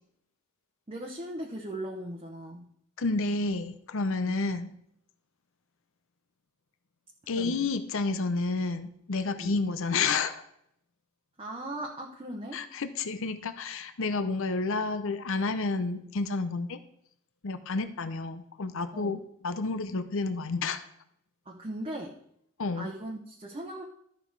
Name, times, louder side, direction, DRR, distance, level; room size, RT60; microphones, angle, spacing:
voice 1, 0.9-2.7 4.2-4.4 7.3-7.7 9.4-9.6 11.4-12.6 18.9-19.2 21.5-22.1 22.8-23.8, right 1 dB, 25° right, 0 dB, 0.9 m, -38 dB
voice 2, 3.0-4.7 7.3-10.4 12.5-16.8 17.4-20.8 22.6-22.9, left 3 dB, 65° left, 10 dB, 0.7 m, -30 dB
12.5 x 5.9 x 4.7 m, 0.73 s
head